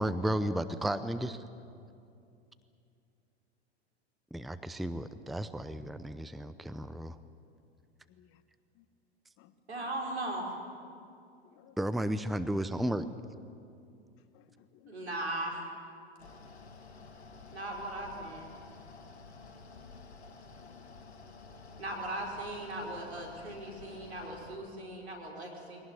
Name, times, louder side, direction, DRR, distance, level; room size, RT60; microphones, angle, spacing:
voice 1, 0.0-1.4 4.3-7.2 11.8-13.1, right 1 dB, ahead, 12 dB, 0.6 m, -33 dB
voice 2, 8.1-8.4 8.8-8.9 9.4-9.5 9.8-9.9 10.8-11.0 11.4-11.8 14.3-14.9 19.7-20.2 20.6-20.7, left 13 dB, 40° left, 12 dB, 1.3 m, -61 dB
voice 3, 9.7-10.5 14.9-15.6 17.5-18.5 21.8-25.8, right 1 dB, 85° right, 0 dB, 5.1 m, -38 dB
Mechanical fan, 16.2-24.6, left 4 dB, 85° left, 1.9 m, -51 dB
23.5 x 18.0 x 9.7 m, 2.5 s
figure-of-eight pair, 95°, 32 cm